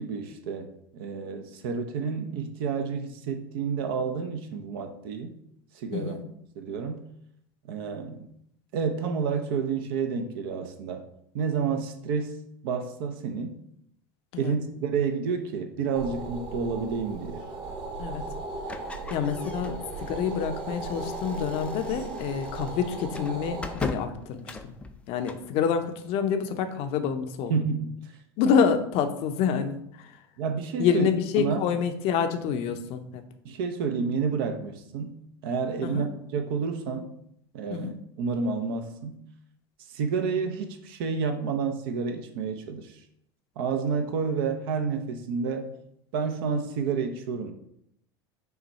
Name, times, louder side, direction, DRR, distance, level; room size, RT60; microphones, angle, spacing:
voice 1, 0.0-5.3 5.7-6.2 6.6-7.0 7.7-8.2 8.7-11.0 11.3-12.4 12.6-13.6 14.4-17.4 27.5-28.0 30.4-31.1 31.4-31.6 33.4-35.2 35.4-36.1 36.3-37.1 37.5-39.2 39.9-43.0 43.6-45.7 46.1-47.5, right 5 dB, 65° right, 6 dB, 0.6 m, -29 dB
voice 2, 5.9-6.2 14.3-14.5 18.0-18.2 19.1-24.7 25.1-27.5 28.4-30.1 30.8-33.2 35.8-36.1 37.7-37.9, left 7 dB, 50° left, 8 dB, 0.6 m, -27 dB
sound 1, 15.9-23.7, right 3 dB, 35° right, 1.1 m, -37 dB
sound 2, 18.7-25.5, left 3 dB, 10° left, 0.4 m, -41 dB
5.6 x 2.2 x 4.1 m, 0.73 s
hypercardioid pair, 95°, 13 cm